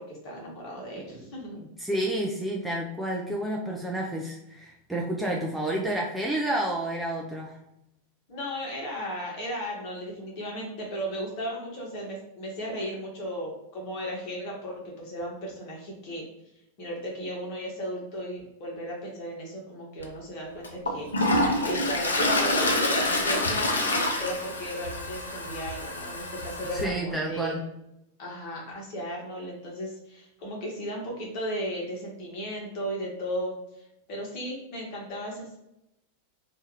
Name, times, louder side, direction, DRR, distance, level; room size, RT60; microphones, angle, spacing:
voice 1, 0.0-1.6 8.3-16.2 16.8-23.9 24.2-27.5 28.2-33.5 34.1-35.6, equal, 45° left, -2 dB, 1.1 m, -35 dB
voice 2, 1.0-1.3 1.6-7.6 26.7-27.6, right 1 dB, 5° right, -3 dB, 0.4 m, -30 dB
Toilet flush, 20.0-20.1 20.6-26.8, left 1 dB, 75° left, 0.4 m, -27 dB
2.7 x 2.3 x 3.0 m, 0.84 s
figure-of-eight pair, 90°, 0 cm